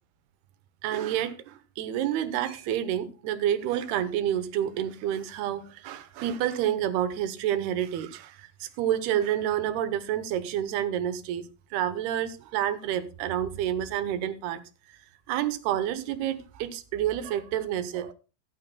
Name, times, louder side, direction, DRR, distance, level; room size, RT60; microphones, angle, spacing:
voice 1, 0.8-14.6 14.9-15.0 15.3-18.1, right 11 dB, 85° right, 2.9 m, -29 dB
14.0 x 12.0 x 2.2 m
omnidirectional pair, 4.5 m